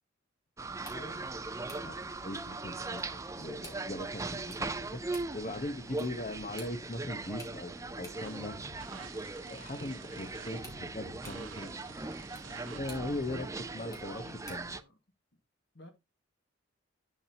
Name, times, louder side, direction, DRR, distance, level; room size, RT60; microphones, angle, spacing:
sound 1, 0.6-14.8, right 3 dB, 15° right, 0.5 m, -40 dB
sound 2, 0.7-14.8, left 1 dB, 15° left, 2.8 m, -57 dB
voice 1, 0.9-1.2 13.3-14.9 15.7-15.9, left 1 dB, 60° left, 2.0 m, -51 dB
voice 2, 1.8-8.6 9.5-14.8, left 1 dB, 40° left, 1.1 m, -40 dB
sound 3, 8.1-13.4, right 3 dB, 80° right, 1.3 m, -50 dB
8.8 x 7.4 x 2.9 m
head